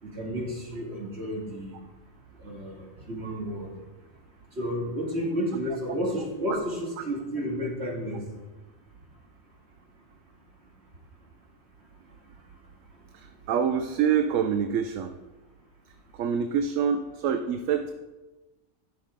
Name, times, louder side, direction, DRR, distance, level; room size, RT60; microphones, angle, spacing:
voice 1, 0.0-1.8 2.4-3.7 4.5-8.2, equal, 55° right, -2 dB, 2.6 m, -31 dB
voice 2, 13.1-15.1 16.1-17.9, right 7 dB, 80° right, 8 dB, 1.0 m, -26 dB
12.5 x 6.0 x 5.1 m, 1.1 s
omnidirectional pair, 1.3 m